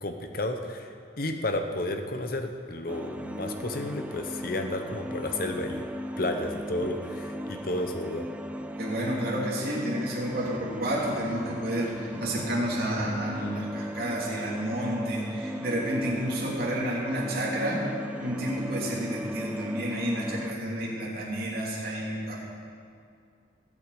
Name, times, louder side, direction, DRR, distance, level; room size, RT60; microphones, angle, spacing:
voice 1, 0.0-5.9 6.2-8.3, left 1 dB, 50° left, 5 dB, 1.1 m, -32 dB
sound 1, 2.9-20.5, equal, 5° right, 0.4 m, -37 dB
voice 2, 8.8-17.8 18.2-22.4, right 1 dB, 50° right, -6 dB, 3.4 m, -30 dB
20.0 x 8.6 x 5.1 m, 2.3 s
head